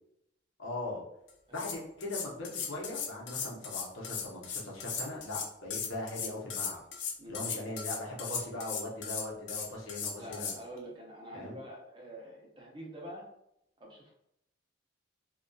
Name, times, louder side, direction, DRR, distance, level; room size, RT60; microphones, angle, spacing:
voice 1, 0.6-1.0 1.5-6.8 7.3-10.5 11.3-11.6, left 2 dB, 90° left, -3 dB, 0.8 m, -40 dB
sound 1, 1.3-1.4 1.5-10.6, left 6 dB, 60° left, 0.4 m, -37 dB
voice 2, 10.2-13.3 13.8-14.1, equal, 25° right, -2 dB, 0.5 m, -46 dB
2.6 x 2.2 x 2.2 m, 0.79 s
head